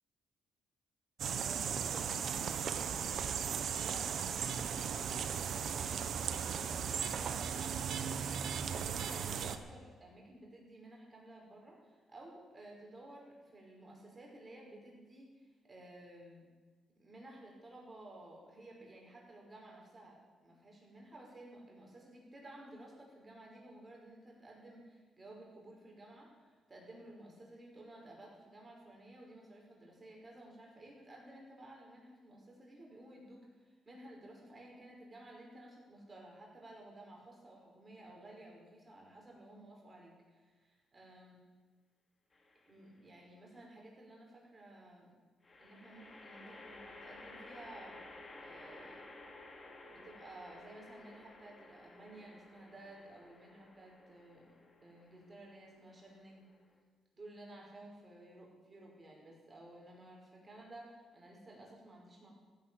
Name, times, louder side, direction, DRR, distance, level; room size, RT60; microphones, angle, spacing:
sound 1, 1.2-9.6, right 7 dB, 65° right, 1.1 m, -37 dB
voice 1, 1.3-3.1 3.4-8.2 8.6-16.5 17.0-41.4 42.7-45.2 45.6-48.1 48.4-49.1 49.8-56.5 57.1-62.3, right 1 dB, 25° right, -1 dB, 5.7 m, -54 dB
sound 2, 42.3-42.9 45.4-56.8, left 2 dB, 30° left, 2.7 m, -55 dB
15.0 x 10.5 x 7.9 m, 1.4 s
cardioid pair, 90°, 0 cm